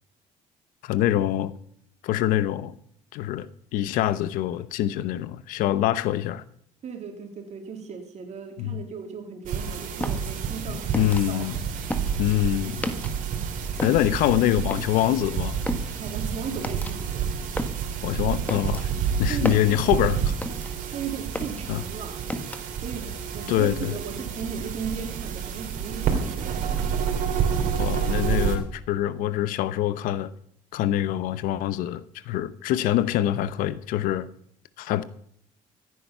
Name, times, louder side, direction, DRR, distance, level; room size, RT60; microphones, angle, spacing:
voice 1, 0.8-1.5 2.0-2.7 3.1-3.5 3.7-6.4 8.6-8.8 10.7-11.6 12.2-12.8 13.8-15.5 18.0-18.9 19.2-20.3 21.7-21.8 23.5-24.0 27.8-30.3 30.7-34.3 34.8-35.0, left 13 dB, 85° left, 16 dB, 0.9 m, -25 dB
voice 2, 6.8-11.5 16.0-17.3 19.3-20.1 20.9-22.2 22.8-26.6, right 6 dB, 55° right, 4 dB, 3.3 m, -36 dB
sound 1, 9.4-28.6, right 7 dB, 70° right, 3.0 m, -29 dB
sound 2, 9.9-13.4 13.7-21.0 21.2-22.9, left 1 dB, 10° left, 1.5 m, -34 dB
15.0 x 9.5 x 5.5 m, 0.67 s
cardioid pair, 95°, 14 cm